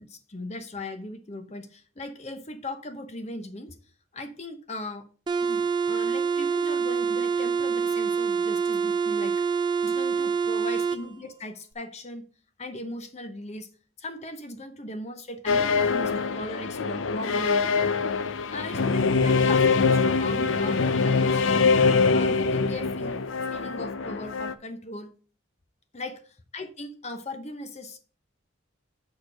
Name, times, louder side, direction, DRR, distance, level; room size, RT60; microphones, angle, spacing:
voice 1, 0.0-3.8 4.1-5.1 5.4-9.5 9.8-12.2 12.6-13.7 14.0-17.7 18.5-21.4 22.1-25.1 25.9-28.0, left 1 dB, 35° left, 9 dB, 0.8 m, -38 dB
sound 1, 5.3-11.0, right 6 dB, 25° right, 0.5 m, -26 dB
sound 2, 15.5-24.5, left 4 dB, 80° left, 0.6 m, -23 dB
6.4 x 4.8 x 6.2 m, 0.41 s
head